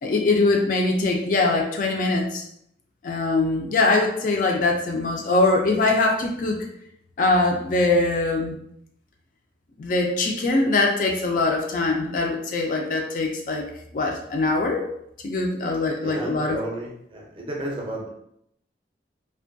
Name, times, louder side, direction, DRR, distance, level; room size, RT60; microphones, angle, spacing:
voice 1, 0.0-2.5 3.0-6.6 7.2-8.6 9.8-14.9 15.2-16.6, left 2 dB, 45° left, 1 dB, 0.3 m, -22 dB
voice 2, 16.0-18.1, right 1 dB, 30° right, -2 dB, 0.5 m, -32 dB
2.5 x 2.2 x 2.5 m, 0.74 s
head